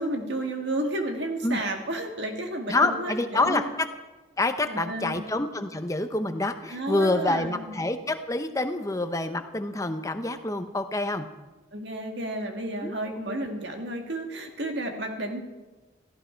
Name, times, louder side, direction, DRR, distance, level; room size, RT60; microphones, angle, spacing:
voice 1, 0.0-3.7 4.6-5.3 6.7-7.9 11.7-15.4, right 1 dB, 60° right, 3 dB, 2.0 m, -32 dB
voice 2, 2.7-3.9 4.4-11.3 12.8-13.0, left 2 dB, 15° left, 8 dB, 0.8 m, -27 dB
16.5 x 15.0 x 4.6 m, 1.2 s
head